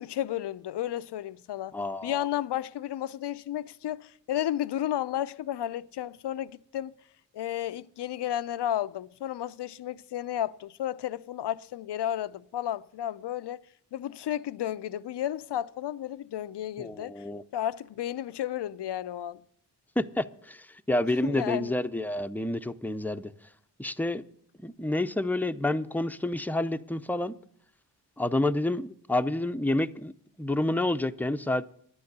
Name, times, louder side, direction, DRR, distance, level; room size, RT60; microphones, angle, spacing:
voice 1, 0.0-6.9 7.3-13.6 13.9-17.2 17.5-19.4 21.2-21.8, left 11 dB, 70° left, 0.5 m, -33 dB
voice 2, 1.7-2.2 16.8-17.4 20.0-23.3 23.8-24.2 24.6-27.3 28.2-30.1 30.4-31.7, left 1 dB, 5° left, 0.6 m, -29 dB
11.5 x 9.6 x 6.7 m
cardioid pair, 40°, 43 cm